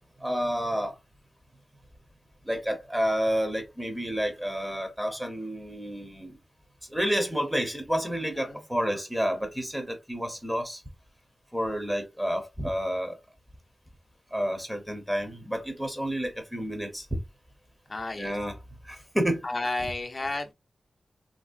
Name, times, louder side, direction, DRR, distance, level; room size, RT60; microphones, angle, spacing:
voice 1, 0.2-1.0 2.5-6.4 6.9-10.8 11.5-13.2 14.3-17.1 18.2-18.6 18.9-19.5, equal, 10° right, 0.8 m, -30 dB
voice 2, 17.9-18.4 19.4-20.5, left 2 dB, 40° left, 0.7 m, -32 dB
2.9 x 2.7 x 2.4 m
cardioid pair, 55°, 0 cm